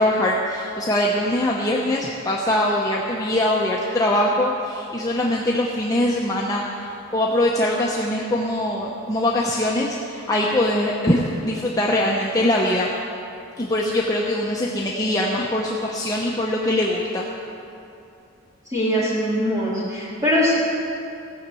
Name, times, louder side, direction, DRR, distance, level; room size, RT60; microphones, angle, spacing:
voice 1, 0.0-12.9 13.6-17.2, left 1 dB, 15° left, -3 dB, 0.8 m, -22 dB
voice 2, 18.7-20.5, equal, 15° right, -8 dB, 3.6 m, -22 dB
16.0 x 6.6 x 8.3 m, 2.7 s
head